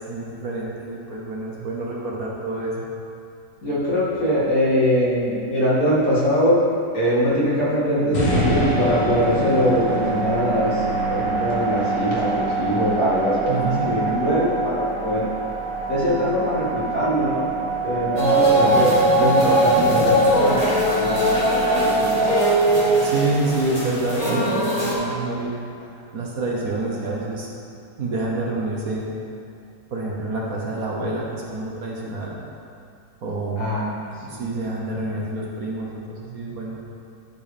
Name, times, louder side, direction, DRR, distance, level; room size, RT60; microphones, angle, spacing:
voice 1, 0.0-2.8 13.5-13.9 23.0-25.6 26.1-27.5 28.0-29.1 29.9-32.3 33.2-33.7 34.4-36.8, right 2 dB, 55° right, -3 dB, 1.5 m, -27 dB
voice 2, 3.6-6.6 6.9-10.8 11.1-15.3 15.9-17.5 17.8-22.2 33.6-34.0 34.3-34.5, equal, 55° left, -8 dB, 2.7 m, -22 dB
sound 1, 8.1-24.3, right 3 dB, 80° left, 2.3 m, -26 dB
sound 2, 18.2-24.9, right 1 dB, 20° left, 1.8 m, -20 dB
12.5 x 4.6 x 5.1 m, 2.5 s
omnidirectional pair, 1.9 m